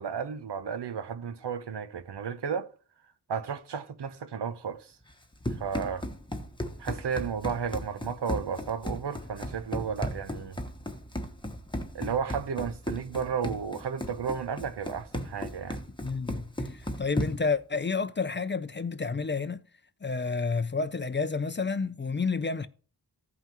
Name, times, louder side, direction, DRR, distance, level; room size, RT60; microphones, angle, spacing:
voice 1, 0.0-2.7 3.3-4.9 5.6-6.0 6.8-10.6 11.9-15.8, right 7 dB, 85° right, 0.8 m, -33 dB
Run, 5.1-17.6, left 1 dB, 10° left, 1.0 m, -36 dB
voice 2, 16.0-19.6 20.0-22.7, left 4 dB, 30° left, 0.4 m, -30 dB
15.5 x 5.6 x 3.0 m
wide cardioid pair, 70°, 40 cm